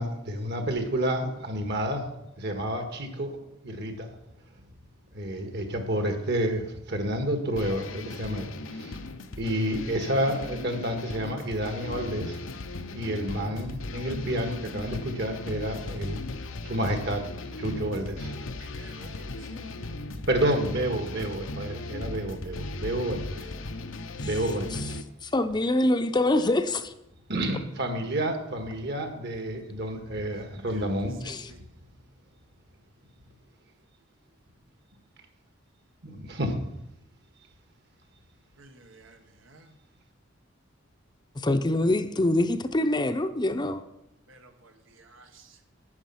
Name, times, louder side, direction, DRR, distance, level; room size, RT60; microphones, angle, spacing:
voice 1, 0.0-2.1 2.4-3.4 3.6-4.1 5.1-9.0 9.4-12.4 12.9-16.2 16.6-17.2 17.6-18.3 20.3-23.5 24.2-25.0 27.3-31.2 36.0-36.6, right 1 dB, 60° right, 1.7 m, -30 dB
sound 1, 7.6-25.0, left 2 dB, 90° left, 0.9 m, -37 dB
voice 2, 18.6-19.7 30.7-30.8 31.2-31.6 38.6-39.2 39.5-39.7 44.3-44.7 45.0-45.5, right 2 dB, 85° right, 1.4 m, -52 dB
voice 3, 25.2-26.9 31.2-31.5 41.4-43.8, left 1 dB, 20° left, 0.6 m, -25 dB
11.5 x 8.8 x 5.8 m
head